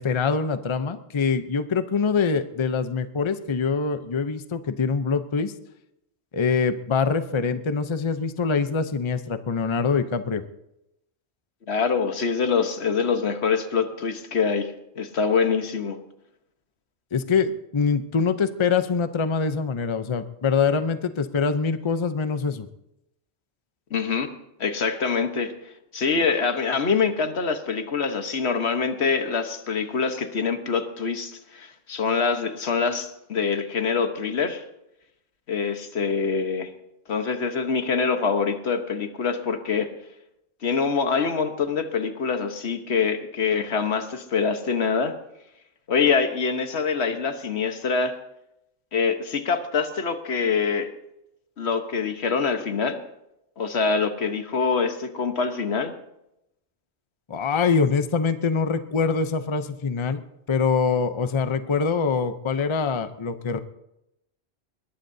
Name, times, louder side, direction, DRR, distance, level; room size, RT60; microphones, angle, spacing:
voice 1, 0.0-5.5 6.3-10.4 17.1-22.7 57.3-60.2 60.5-63.6, left 5 dB, 30° left, 10 dB, 0.6 m, -24 dB
voice 2, 11.7-16.0 23.9-24.3 24.6-25.5 25.9-34.6 35.5-36.7 37.1-39.9 40.6-45.2 45.9-48.2 48.9-50.9 51.6-53.0 53.6-55.9, left 5 dB, 75° left, 7 dB, 1.4 m, -25 dB
22.0 x 20.5 x 2.7 m, 0.86 s
omnidirectional pair, 1.1 m